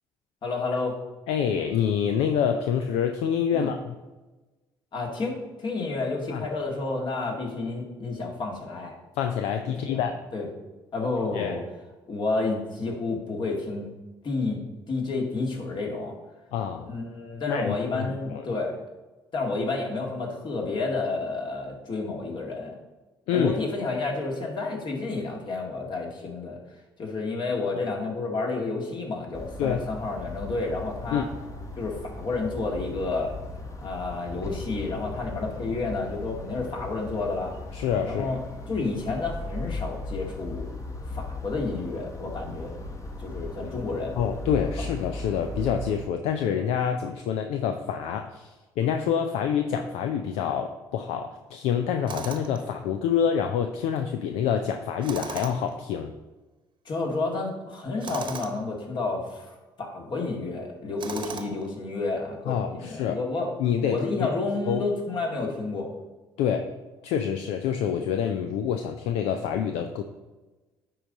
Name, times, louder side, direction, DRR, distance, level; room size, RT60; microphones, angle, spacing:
voice 1, 0.4-1.0 3.5-3.7 4.9-8.9 9.9-10.0 10.3-10.5 10.9-11.6 12.1-13.9 14.2-14.6 14.9-16.1 16.9-18.8 19.3-22.8 23.3-26.6 27.0-31.3 31.8-33.3 33.8-37.5 38.1-38.4 38.7-40.6 41.1-42.7 43.2-44.2 56.9-63.5 63.9-65.9, left 3 dB, 45° left, 0 dB, 1.9 m, -30 dB
voice 2, 1.3-4.0 6.3-6.5 9.2-10.1 11.3-11.5 16.5-16.9 17.5-18.5 23.3-23.6 29.6-29.8 31.1-31.2 37.7-38.4 44.2-56.1 62.5-63.2 63.6-64.3 64.7-64.8 66.4-66.7 67.0-70.0, left 8 dB, 70° left, 6 dB, 0.5 m, -27 dB
sound 1, 29.3-46.1, left 2 dB, 30° left, 1.3 m, -37 dB
Tools, 52.1-52.6 55.0-55.7 58.0-58.6 61.0-61.7, right 5 dB, 50° right, 1.1 m, -36 dB
10.0 x 3.9 x 4.0 m, 1.2 s
hypercardioid pair, 50°, 11 cm